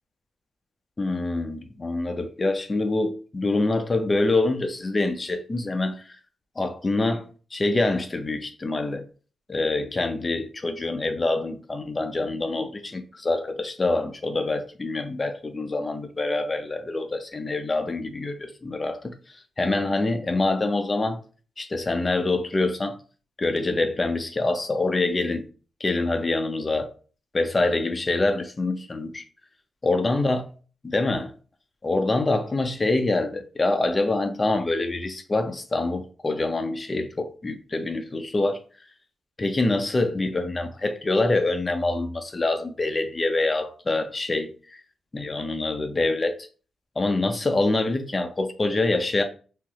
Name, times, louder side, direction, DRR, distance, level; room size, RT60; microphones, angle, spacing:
voice 1, 1.0-6.2 6.6-9.1 9.5-19.1 19.6-21.2 21.6-23.0 23.4-25.4 25.8-26.9 27.3-29.2 29.8-30.5 30.8-31.3 31.8-38.6 39.4-44.5 45.1-46.5 47.0-49.2, left 2 dB, 35° left, 0.6 m, -25 dB
3.8 x 2.1 x 2.9 m
cardioid pair, 55°, 0 cm